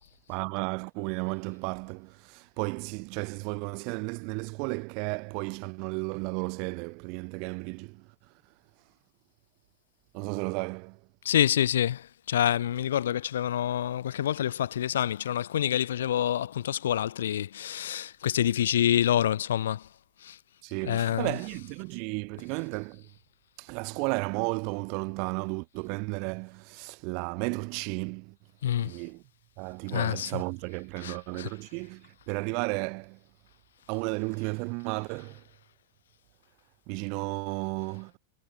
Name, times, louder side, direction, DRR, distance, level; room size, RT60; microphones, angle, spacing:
voice 1, 0.3-8.0 10.1-11.0 20.6-23.0 23.6-28.3 28.8-29.2 29.6-33.2 33.9-35.4 36.9-38.2, right 35 dB, 45° right, 5.6 m, -33 dB
voice 2, 11.2-19.8 20.2-20.4 20.8-21.3 28.6-28.9 29.9-30.3 31.0-31.5, left 10 dB, 60° left, 1.0 m, -27 dB
figure-of-eight pair, 90°, 0 cm